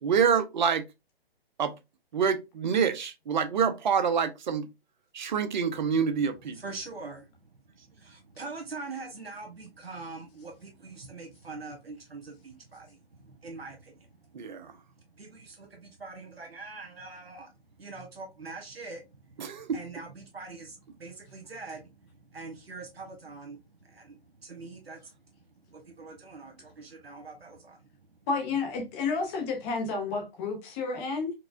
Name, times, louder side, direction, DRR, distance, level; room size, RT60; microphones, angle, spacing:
voice 1, 0.0-0.8 1.6-1.7 2.1-4.7 5.1-6.6 14.3-14.7 19.4-19.7, right 6 dB, 50° right, 0.6 m, -26 dB
voice 2, 6.5-28.2, right 3 dB, 85° right, 1.4 m, -44 dB
voice 3, 28.3-31.3, left 4 dB, 15° left, 0.6 m, -31 dB
4.7 x 2.2 x 2.5 m
hypercardioid pair, 145°, 30 cm